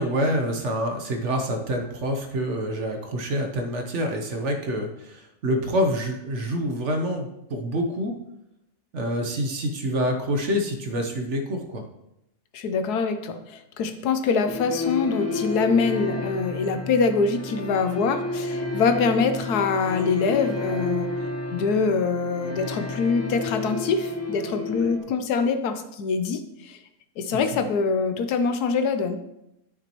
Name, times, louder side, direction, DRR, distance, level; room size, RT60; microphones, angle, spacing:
voice 1, 0.0-8.2 8.9-11.8 27.5-27.6, equal, 55° right, 4 dB, 1.1 m, -27 dB
voice 2, 12.5-21.1 21.5-26.8 27.2-29.2, left 5 dB, 80° left, 8 dB, 1.2 m, -24 dB
sound 1, 14.5-25.0, left 2 dB, 20° left, 0.4 m, -31 dB
11.5 x 6.1 x 3.0 m, 0.85 s
omnidirectional pair, 1.7 m